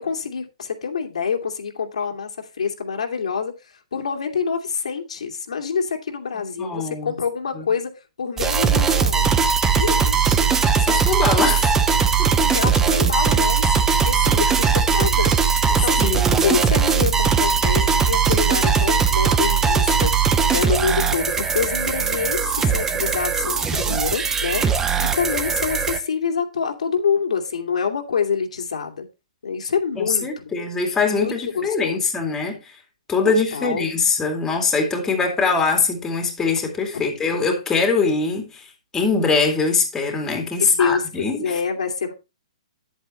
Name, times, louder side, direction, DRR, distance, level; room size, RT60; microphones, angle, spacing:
voice 1, 0.0-3.5 3.9-7.9 8.2-9.3 9.8-10.5 12.5-13.7 14.0-16.1 16.4-24.6 25.0-29.1 29.4-30.5 31.1-32.1 33.3-33.9 40.6-42.1, left 6 dB, 80° left, 2.3 m, -26 dB
voice 2, 6.6-7.1 7.5-7.6 10.8-11.7 12.2-12.5 16.0-16.6 30.0-32.6 33.1-38.6 38.9-41.5, left 4 dB, 10° left, 2.4 m, -22 dB
sound 1, 8.4-26.0, right 6 dB, 10° right, 0.9 m, -19 dB
10.0 x 8.2 x 3.0 m
hypercardioid pair, 145°, 4 cm